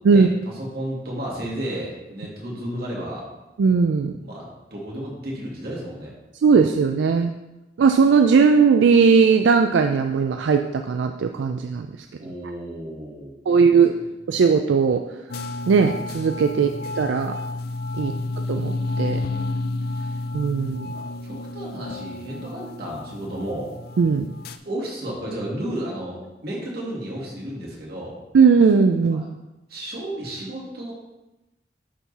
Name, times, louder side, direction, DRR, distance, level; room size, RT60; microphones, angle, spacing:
voice 1, 0.1-3.3 4.2-6.1 12.2-13.8 16.5-16.7 18.0-18.2 19.9-20.2 20.9-23.7 24.6-28.1 29.1-29.2 29.7-30.9, right 1 dB, 60° right, -4 dB, 2.2 m, -33 dB
voice 2, 3.6-4.1 6.4-7.3 7.8-11.9 13.5-13.9 14.3-15.0 15.7-17.3 18.0-18.1 18.5-19.2 20.3-20.9 24.0-24.3 28.3-29.3, right 5 dB, 85° right, 6 dB, 0.4 m, -18 dB
sound 1, 15.3-24.6, left 2 dB, 60° left, 0.4 m, -31 dB
10.5 x 3.8 x 4.1 m, 1.0 s
head